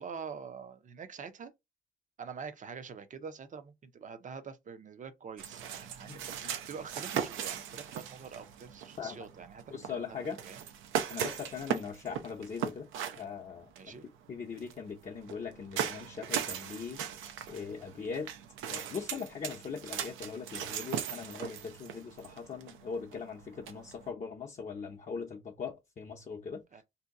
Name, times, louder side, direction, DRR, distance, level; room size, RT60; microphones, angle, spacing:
voice 1, 0.0-1.5 2.2-10.2 10.4-10.7 13.8-14.1 26.7-26.8, right 6 dB, 40° right, 0.6 m, -45 dB
sound 1, 5.4-24.1, right 9 dB, 90° right, 0.6 m, -39 dB
voice 2, 6.1-6.5 9.0-9.2 9.7-10.4 11.1-12.9 13.2-13.9 14.3-17.0 17.5-18.3 18.7-26.8, left 6 dB, 35° left, 0.6 m, -40 dB
2.7 x 2.2 x 3.6 m
cardioid pair, 90°, 20 cm